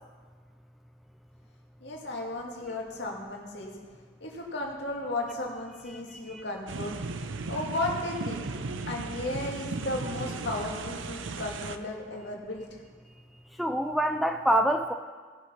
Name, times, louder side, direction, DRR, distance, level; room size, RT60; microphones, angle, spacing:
voice 1, 1.8-3.7 4.2-7.0 7.5-8.5 8.9-12.8, left 2 dB, 65° left, -1 dB, 2.3 m, -34 dB
voice 2, 5.9-6.4 13.6-14.9, right 1 dB, ahead, 6 dB, 0.3 m, -26 dB
sound 1, 6.7-11.8, right 3 dB, 90° right, 0.6 m, -36 dB
17.5 x 6.7 x 5.7 m, 1.5 s
head